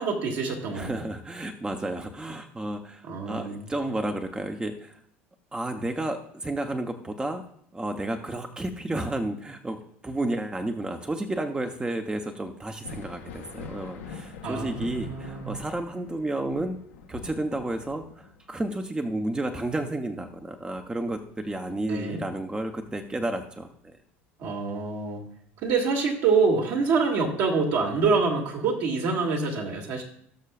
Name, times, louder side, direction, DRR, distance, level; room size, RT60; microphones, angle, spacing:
voice 1, 0.0-1.0 3.1-3.6 14.4-15.6 21.9-22.2 24.4-25.3 25.6-30.0, right 4 dB, 60° right, 0 dB, 2.3 m, -26 dB
voice 2, 0.7-5.0 5.5-7.5 7.7-16.8 17.1-24.0, right 1 dB, 15° right, 5 dB, 0.9 m, -31 dB
Thunder, 12.8-22.0 22.4-23.6 25.2-25.3 26.1-26.2, left 5 dB, 85° left, 1.3 m, -44 dB
18.0 x 6.6 x 2.4 m, 0.67 s
hypercardioid pair, 75°, 7 cm